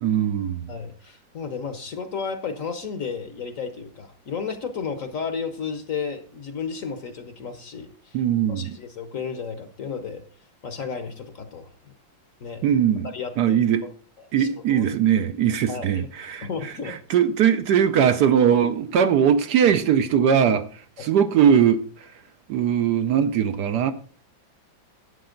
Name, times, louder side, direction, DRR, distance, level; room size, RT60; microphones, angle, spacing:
voice 1, 0.0-0.7 8.1-8.8 12.6-13.1 13.4-13.9 14.3-22.1 22.5-23.9, right 8 dB, 70° right, 1.1 m, -20 dB
voice 2, 0.7-8.2 8.5-10.2 10.6-11.7 12.4-12.6 13.0-13.6 14.2-14.9 15.7-16.1 16.4-17.0 21.0-21.1, left 6 dB, 50° left, 1.1 m, -33 dB
11.5 x 8.7 x 3.8 m
omnidirectional pair, 2.1 m